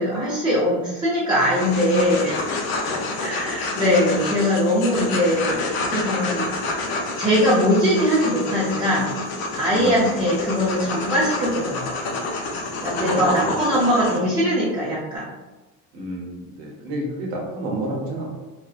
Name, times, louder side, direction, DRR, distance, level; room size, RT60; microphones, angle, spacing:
voice 1, 0.0-2.6 3.1-6.5 7.2-9.1 9.6-12.1 12.8-15.3, equal, 10° right, -8 dB, 0.5 m, -21 dB
sound 1, 1.4-14.2, left 3 dB, 65° left, 0.6 m, -28 dB
voice 2, 2.8-3.4 9.7-10.3 12.8-13.6 13.9-14.0 15.9-18.3, right 1 dB, 85° right, -1 dB, 0.8 m, -31 dB
2.6 x 2.1 x 2.3 m, 1.1 s
supercardioid pair, 110°, 39 cm